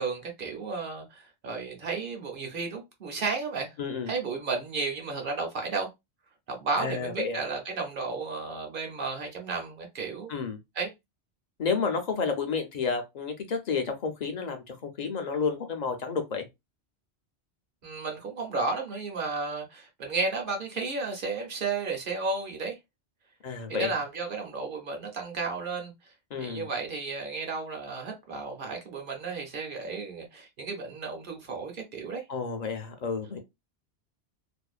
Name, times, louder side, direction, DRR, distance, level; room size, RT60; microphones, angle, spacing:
voice 1, 0.0-3.8 4.1-5.9 6.5-10.3 10.8-10.9 17.8-22.8 23.7-25.9 26.4-32.2, right 4 dB, 55° right, 0.8 m, -33 dB
voice 2, 3.8-4.1 6.8-7.4 10.3-10.6 11.6-16.5 23.4-23.9 26.3-26.7 32.3-33.4, left 5 dB, 50° left, 0.5 m, -31 dB
2.5 x 2.1 x 2.3 m
omnidirectional pair, 1.1 m